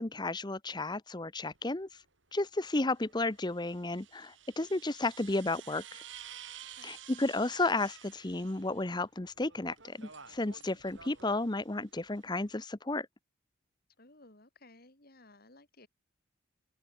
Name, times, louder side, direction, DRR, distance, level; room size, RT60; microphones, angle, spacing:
voice 1, 0.0-1.9 2.3-6.0 6.8-13.1, left 2 dB, 20° left, 0.9 m, -33 dB
sound 1, 1.4-1.6 2.9-8.9 9.3-12.5, right 8 dB, 65° right, 6.9 m, -52 dB
voice 2, 6.5-6.9 14.0-15.9, left 2 dB, 45° left, 3.9 m, -58 dB
open air
head